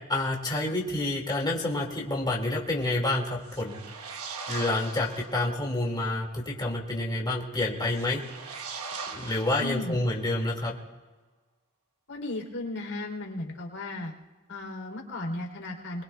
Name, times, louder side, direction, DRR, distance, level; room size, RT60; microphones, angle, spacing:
voice 1, 0.1-3.8 4.5-8.2 9.1-10.7, left 2 dB, 20° left, -2 dB, 2.2 m, -28 dB
sound 1, 3.4-5.5 7.8-10.2, right 5 dB, 90° right, 1.2 m, -40 dB
voice 2, 9.6-10.0 12.1-14.1 14.5-16.0, left 2 dB, 85° left, 0 dB, 3.5 m, -35 dB
29.0 x 21.0 x 2.3 m, 1.3 s
head